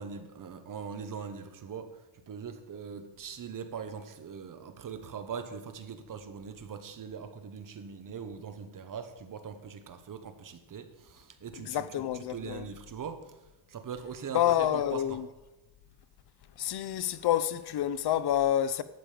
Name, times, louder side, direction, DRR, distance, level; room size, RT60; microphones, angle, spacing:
voice 1, 0.0-13.2 13.7-15.2, right 6 dB, 40° right, 1.1 m, -41 dB
voice 2, 11.6-12.7 14.3-15.3 16.6-18.8, left 11 dB, 50° left, 0.7 m, -28 dB
12.0 x 7.5 x 5.0 m
cardioid pair, 135°, 50 cm